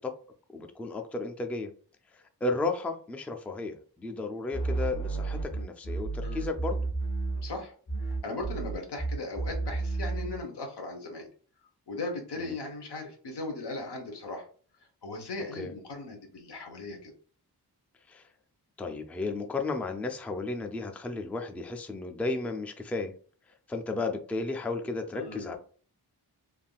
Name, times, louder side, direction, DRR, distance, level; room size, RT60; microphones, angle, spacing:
voice 1, 0.5-1.7 2.1-6.9 12.4-12.5 15.6-15.7 18.1-18.3 18.8-23.1 23.7-25.6, left 3 dB, 5° left, 4 dB, 0.3 m, -34 dB
sound 1, 4.5-7.6 7.9-10.4, right 3 dB, 50° left, 1.1 m, -32 dB
voice 2, 7.3-7.7 8.2-11.3 11.9-14.5 15.0-17.1 25.1-25.6, left 2 dB, 85° left, 3 dB, 0.9 m, -38 dB
3.4 x 2.5 x 2.2 m, 0.42 s
wide cardioid pair, 90°, 39 cm